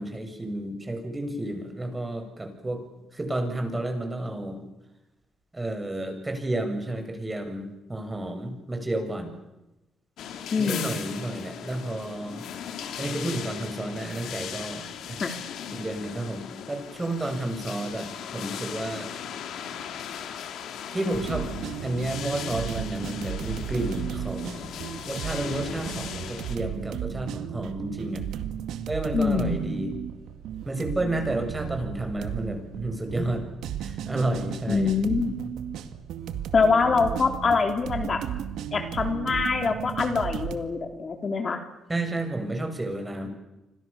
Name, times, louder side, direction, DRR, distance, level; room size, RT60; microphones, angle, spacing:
voice 1, 0.0-2.8 3.1-4.6 5.5-9.3 10.6-12.4 13.0-15.2 15.7-19.1 20.9-21.5 21.8-24.7 25.0-28.2 28.9-29.9 30.6-33.4 33.8-34.9 41.9-43.3, right 1 dB, 20° right, 5 dB, 7.7 m, -31 dB
sound 1, 10.2-26.6, left 8 dB, 80° left, 3.5 m, -38 dB
voice 2, 10.5-11.0 15.2-15.3 29.1-29.7 34.7-35.3 36.5-38.2 38.7-41.6, left 4 dB, 40° left, 6 dB, 3.4 m, -24 dB
sound 2, 21.1-40.6, right 9 dB, 85° right, 2.2 m, -35 dB
30.0 x 26.0 x 7.2 m, 0.96 s
cardioid pair, 90°, 0 cm